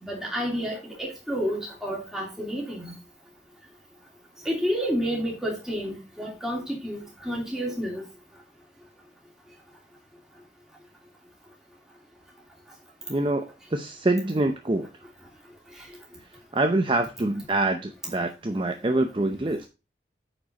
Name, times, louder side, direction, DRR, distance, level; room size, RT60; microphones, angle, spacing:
voice 1, 0.0-2.9 4.4-8.0, equal, 5° right, 2.9 m, -30 dB
voice 2, 13.1-14.9 16.2-19.7, right 2 dB, 30° right, 0.6 m, -26 dB
8.7 x 4.9 x 4.1 m
head